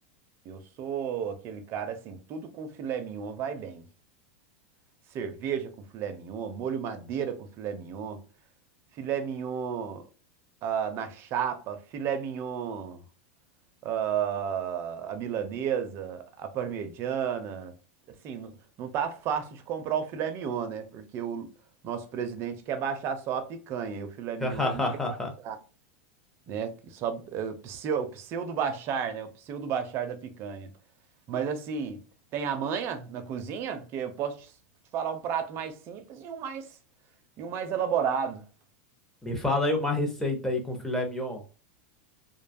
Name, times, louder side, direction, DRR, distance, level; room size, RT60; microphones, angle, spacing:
voice 1, 0.5-3.8 5.1-8.2 9.0-10.0 10.6-13.0 13.8-17.8 18.2-18.5 18.8-21.5 21.8-24.9 25.4-25.6 26.5-30.7 31.3-32.0 32.3-34.5 34.9-36.7 37.4-38.4, right 7 dB, 40° right, 0.5 m, -32 dB
voice 2, 24.4-25.3 39.2-41.4, left 2 dB, 5° left, 0.7 m, -28 dB
2.6 x 2.3 x 2.5 m
supercardioid pair, 135°, 7 cm